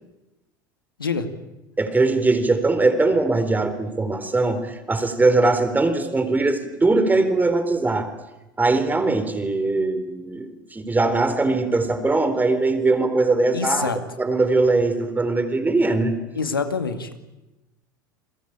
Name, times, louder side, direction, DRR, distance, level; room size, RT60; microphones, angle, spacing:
voice 1, 1.8-8.1 8.6-13.9 14.2-16.1, right 3 dB, 15° right, 10 dB, 4.2 m, -21 dB
voice 2, 13.5-14.0 16.3-17.1, left 5 dB, 90° left, 8 dB, 2.3 m, -25 dB
29.5 x 22.0 x 8.9 m, 1.0 s
hypercardioid pair, 80°, 11 cm